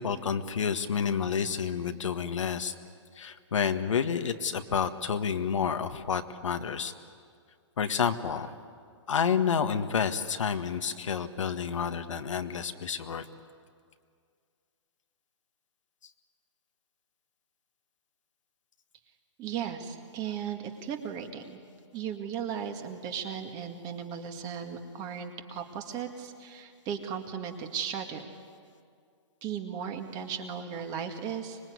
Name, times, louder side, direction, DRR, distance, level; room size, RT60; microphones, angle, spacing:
voice 1, 0.0-2.7 3.2-6.9 7.8-8.5 9.1-13.2, left 7 dB, 80° left, 7 dB, 1.6 m, -29 dB
voice 2, 19.4-21.6 21.9-28.3 29.4-31.6, right 8 dB, 25° right, 5 dB, 2.0 m, -36 dB
25.0 x 21.5 x 9.6 m, 2.2 s
hypercardioid pair, 150°, 16 cm